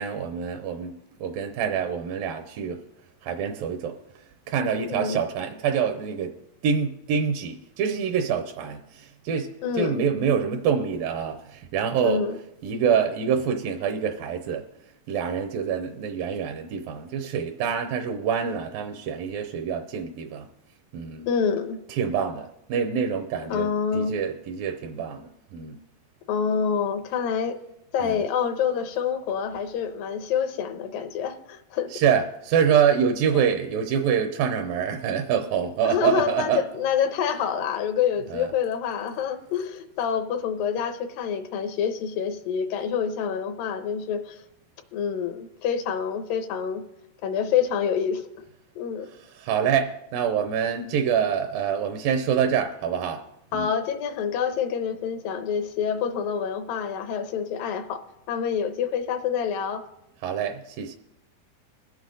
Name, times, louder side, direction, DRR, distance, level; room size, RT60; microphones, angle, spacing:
voice 1, 0.0-2.8 3.2-4.0 4.5-6.3 6.6-9.5 9.7-12.2 12.6-14.6 15.1-20.5 20.9-21.3 21.9-25.8 28.0-28.2 31.9-36.6 38.3-38.5 49.4-53.3 53.5-53.7 60.2-61.0, right 7 dB, 80° right, 2.5 m, -26 dB
voice 2, 4.9-5.3 9.6-10.1 12.0-12.4 21.3-21.8 23.5-24.2 26.3-27.6 27.9-31.9 35.8-44.4 44.9-46.8 47.2-48.2 48.8-49.1 53.5-59.9, left 7 dB, 80° left, 2.5 m, -27 dB
21.0 x 7.9 x 3.8 m
omnidirectional pair, 4.0 m